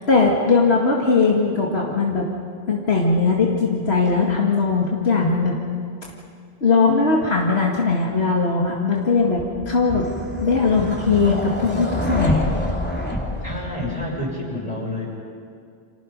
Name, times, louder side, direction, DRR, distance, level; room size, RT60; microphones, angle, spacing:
voice 1, 0.1-2.3 2.7-5.6 6.6-10.1 10.4-12.5, left 4 dB, 75° left, -2 dB, 2.4 m, -19 dB
sound 1, 9.4-14.3, left 1 dB, 10° left, 3.0 m, -27 dB
voice 2, 13.4-15.1, left 1 dB, 35° left, -2 dB, 6.1 m, -28 dB
30.0 x 26.0 x 5.4 m, 2.4 s
omnidirectional pair, 1.1 m